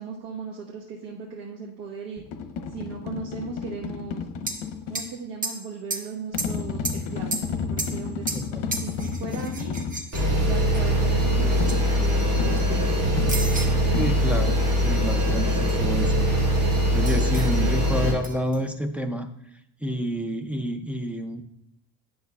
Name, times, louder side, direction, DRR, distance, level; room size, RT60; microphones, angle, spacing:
voice 1, 0.0-2.2 2.7-4.2 4.9-8.3 8.8-9.7 10.4-13.2 13.6-13.7 15.7-15.8 17.5-17.8, right 5 dB, 70° right, -3 dB, 1.3 m, -37 dB
sound 1, 2.2-5.1 6.3-10.1 11.6-14.6, left 6 dB, 75° left, 0.8 m, -32 dB
sound 2, 4.5-4.7 5.0-5.1 5.4-6.1 6.4-7.1 7.3-8.5 8.7-10.9 11.5-11.8 12.2-12.8 13.3-13.8 15.7-15.8 17.1-17.6 18.2-18.6, right 2 dB, 20° right, 0.8 m, -33 dB
voice 2, 8.3-8.6 14.0-16.3 16.9-19.3 19.8-21.4, equal, 5° right, 6 dB, 0.3 m, -29 dB
sound 3, 10.1-18.1, equal, 35° right, 2.1 m, -22 dB
10.5 x 6.2 x 2.3 m, 0.78 s
cardioid pair, 140°, 43 cm